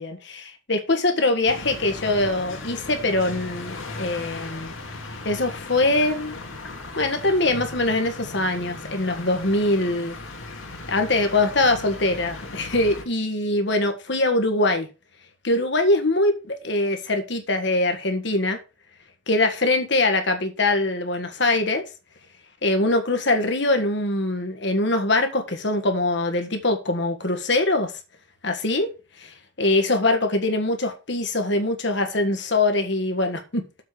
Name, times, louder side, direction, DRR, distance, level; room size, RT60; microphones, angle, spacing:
voice 1, 0.0-4.7 5.2-6.4 7.0-10.2 10.9-14.9 15.4-18.6 19.3-21.8 22.6-27.9 28.4-28.9 29.6-33.8, left 2 dB, 60° left, 1.6 m, -23 dB
sound 1, 1.5-13.0, left 3 dB, 85° left, 2.1 m, -37 dB
7.5 x 5.1 x 6.4 m
head